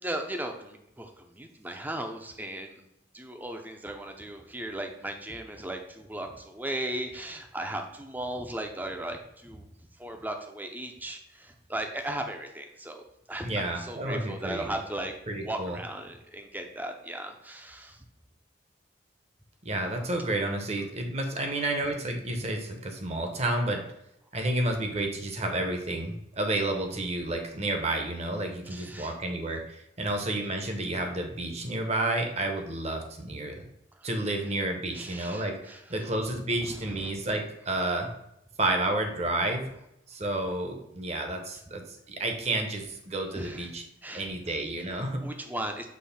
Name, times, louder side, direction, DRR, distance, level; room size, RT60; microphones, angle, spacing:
voice 1, 0.0-2.9 3.1-9.6 10.0-18.0 28.6-29.2 33.9-34.1 34.9-37.1 43.3-43.7 44.0-44.6 45.2-45.9, right 1 dB, 10° right, 4 dB, 0.6 m, -37 dB
voice 2, 13.4-14.7 15.3-15.8 19.6-23.8 24.3-33.6 34.0-38.1 38.6-39.7 40.1-43.8 44.1-45.2, right 1 dB, 35° right, 3 dB, 0.9 m, -30 dB
6.4 x 3.1 x 5.7 m, 0.80 s
head